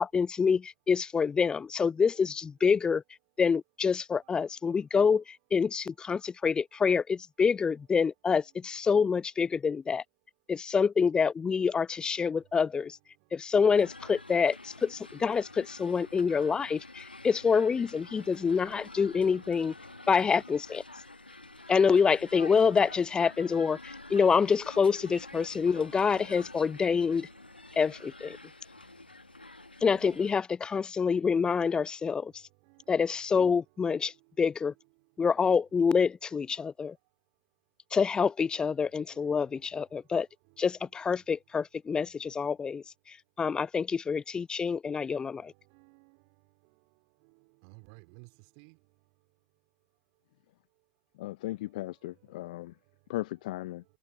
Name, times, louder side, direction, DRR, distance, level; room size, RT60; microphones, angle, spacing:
voice 1, 0.0-3.0 3.4-10.0 10.5-13.0 13.3-19.7 20.1-20.8 21.7-27.3 27.8-28.4 29.8-32.3 32.9-34.7 35.2-36.9 37.9-40.3 40.6-45.5, left 6 dB, 15° left, 0.4 m, -27 dB
sound 1, 13.7-30.4, left 2 dB, 85° left, 1.6 m, -48 dB
voice 2, 18.2-18.7 25.8-26.3 32.7-33.1 39.1-39.5 45.7-46.2 47.6-48.3 48.6-48.8, right 40 dB or more, 50° right, 3.1 m, -56 dB
voice 3, 51.2-52.8 53.1-53.8, left 17 dB, 55° left, 0.9 m, -37 dB
figure-of-eight pair, 85°, 5 cm